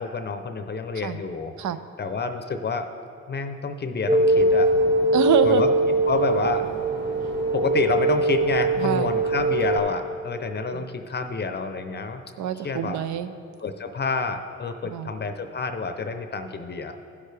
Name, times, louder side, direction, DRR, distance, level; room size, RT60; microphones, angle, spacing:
voice 1, 0.0-1.5 2.0-2.9 3.3-4.7 5.4-5.7 6.1-6.6 7.5-12.2 12.6-13.0 13.6-16.9, left 4 dB, 35° left, 7 dB, 0.6 m, -28 dB
sound 1, 4.1-9.8, right 1 dB, 40° right, 1.8 m, -22 dB
voice 2, 5.1-5.6 7.1-7.4 8.8-9.1 10.7-10.9 12.4-13.3 14.8-15.1, right 9 dB, 70° right, 10 dB, 0.6 m, -26 dB
15.5 x 6.5 x 3.4 m, 2.5 s
cardioid pair, 90°, 30 cm